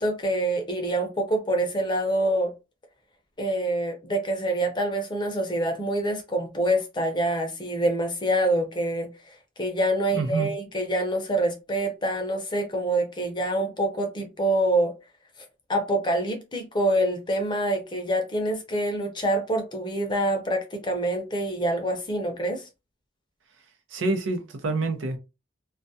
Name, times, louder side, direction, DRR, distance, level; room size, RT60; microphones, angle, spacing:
voice 1, 0.0-2.5 3.4-9.1 9.6-14.9 15.7-22.6, right 1 dB, 25° left, 0.5 m, -26 dB
voice 2, 10.1-10.5 23.9-25.2, right 3 dB, 90° right, 0.6 m, -27 dB
2.3 x 2.1 x 2.6 m
head